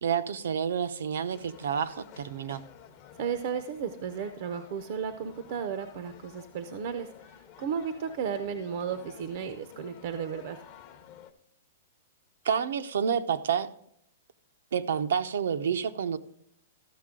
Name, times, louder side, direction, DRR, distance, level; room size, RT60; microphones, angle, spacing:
voice 1, 0.0-2.6 12.4-13.7 14.7-16.2, right 7 dB, 70° right, 11 dB, 0.8 m, -29 dB
sound 1, 1.3-11.3, left 8 dB, 25° left, 0.7 m, -52 dB
voice 2, 3.2-7.1 7.6-10.6, right 7 dB, 40° right, 9 dB, 0.6 m, -34 dB
13.5 x 6.5 x 3.7 m, 0.73 s
hypercardioid pair, 175°, 0 cm